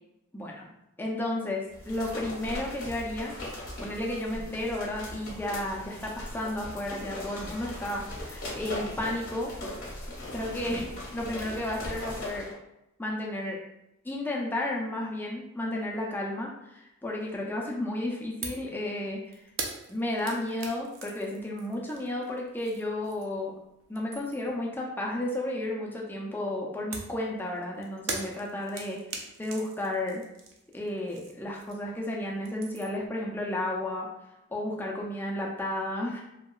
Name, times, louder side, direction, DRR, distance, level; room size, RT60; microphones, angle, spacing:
voice 1, 0.3-0.7 1.0-3.4 3.8-9.5 10.3-12.5 13.0-13.6 14.0-19.4 19.9-23.5 23.9-30.2 30.7-34.1 34.5-36.2, left 1 dB, 10° left, -2 dB, 0.4 m, -33 dB
sound 1, 1.7-12.5, left 1 dB, 40° left, 0.7 m, -39 dB
sound 2, 18.4-18.7 19.0-23.5 23.8-24.6 26.9-32.0 32.3-33.1, right 4 dB, 60° right, 0.4 m, -41 dB
2.8 x 2.3 x 2.3 m, 0.88 s
head